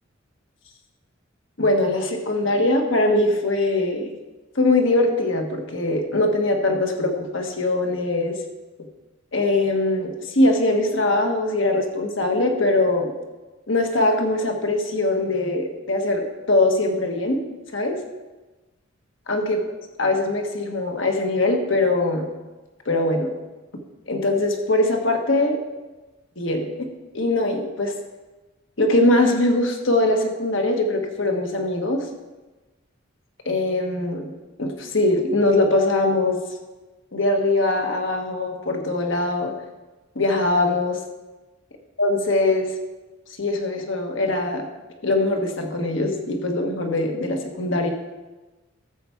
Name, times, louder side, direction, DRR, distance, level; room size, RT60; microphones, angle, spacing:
voice 1, 1.6-4.1 4.5-8.3 9.3-13.1 13.7-17.4 17.7-18.0 19.3-19.6 20.0-22.3 22.8-23.3 24.1-25.6 26.4-26.9 27.1-27.9 28.8-32.0 33.4-34.3 34.6-36.4 37.1-39.5 40.1-41.0 42.0-42.7 43.4-44.7 45.0-47.9, left 2 dB, 70° left, 3 dB, 1.5 m, -22 dB
13.5 x 4.6 x 7.1 m, 1.2 s
head